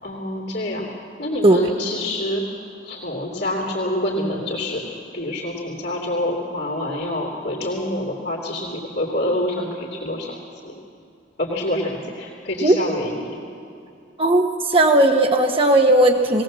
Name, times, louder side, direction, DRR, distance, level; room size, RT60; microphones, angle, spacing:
voice 1, 0.0-10.7 11.4-13.4, left 1 dB, 55° left, -3 dB, 2.9 m, -27 dB
voice 2, 14.2-16.4, right 1 dB, 30° right, 3 dB, 1.1 m, -16 dB
20.0 x 18.0 x 7.5 m, 2.6 s
head